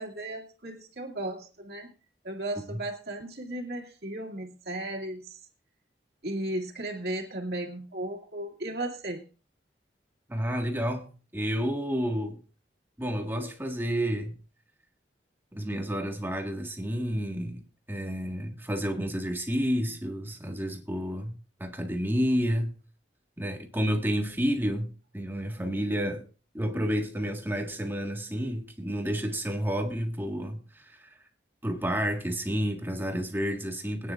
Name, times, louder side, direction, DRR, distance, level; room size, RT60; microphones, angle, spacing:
voice 1, 0.0-1.9 2.2-5.4 6.2-9.3, right 1 dB, 60° right, 2.3 m, -35 dB
voice 2, 10.3-12.4 13.0-14.4 15.5-17.6 17.9-22.7 23.4-26.2 26.5-31.2 31.6-34.1, equal, 10° right, 1.6 m, -30 dB
22.5 x 9.8 x 2.5 m
head